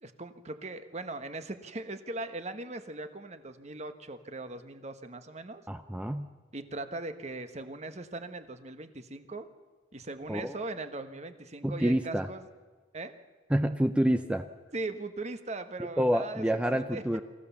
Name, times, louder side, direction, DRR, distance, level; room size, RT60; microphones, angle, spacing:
voice 1, 0.0-5.6 6.5-9.5 9.9-12.5 12.9-13.1 14.7-17.2, right 2 dB, 40° right, 9 dB, 1.2 m, -39 dB
voice 2, 5.7-6.3 10.3-10.6 11.6-12.3 13.5-14.5 16.0-17.2, equal, 5° right, 8 dB, 0.5 m, -27 dB
25.5 x 15.0 x 7.1 m, 1.4 s
head